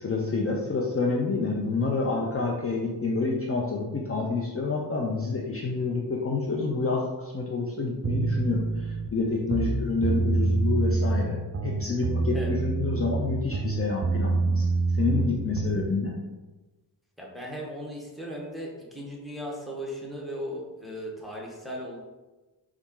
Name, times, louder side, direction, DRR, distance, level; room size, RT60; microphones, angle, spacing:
voice 1, 0.0-14.7 15.0-16.1, left 4 dB, 35° left, -2 dB, 0.6 m, -28 dB
sound 1, 8.0-9.1 9.4-11.2 11.5-13.3 13.5-15.9, right 3 dB, 35° right, 0.5 m, -26 dB
voice 2, 17.2-22.0, equal, ahead, -3 dB, 1.0 m, -37 dB
4.1 x 2.4 x 3.7 m, 1.2 s
cardioid pair, 65°, 42 cm